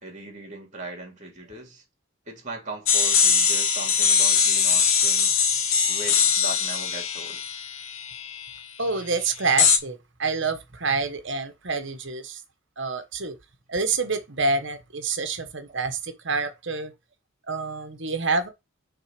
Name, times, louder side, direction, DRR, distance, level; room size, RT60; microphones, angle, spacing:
voice 1, 0.0-1.8 2.3-5.4 5.9-7.4 15.7-15.8, right 3 dB, 35° right, 3.0 m, -39 dB
sound 1, 2.9-8.6 9.6-9.8, left 6 dB, 80° left, 1.2 m, -21 dB
voice 2, 8.8-12.4 12.8-13.3 13.7-16.9 17.5-18.5, right 4 dB, 60° right, 1.3 m, -27 dB
6.7 x 3.9 x 6.0 m
head